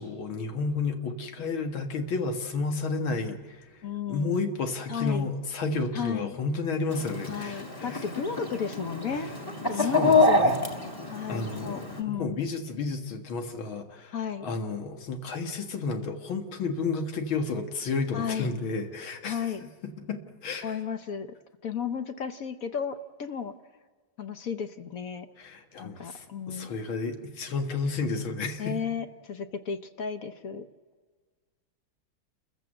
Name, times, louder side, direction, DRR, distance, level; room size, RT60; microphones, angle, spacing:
voice 1, 0.0-3.6 4.1-8.0 9.7-10.5 11.3-14.1 14.4-19.5 20.0-20.7 25.4-28.8, left 4 dB, 85° left, 5 dB, 2.4 m, -31 dB
voice 2, 3.8-4.5 4.9-5.3 5.9-6.4 7.3-9.3 9.7-10.6 11.1-12.4 14.1-14.5 18.1-18.5 19.2-19.7 20.6-21.4 21.6-23.5 24.2-25.3 25.8-26.7 28.6-30.7, left 7 dB, 55° left, 9 dB, 1.1 m, -33 dB
Chicken rooster, 6.9-12.0, left 2 dB, 10° left, 1.9 m, -27 dB
29.0 x 15.0 x 7.7 m, 1.5 s
omnidirectional pair, 2.2 m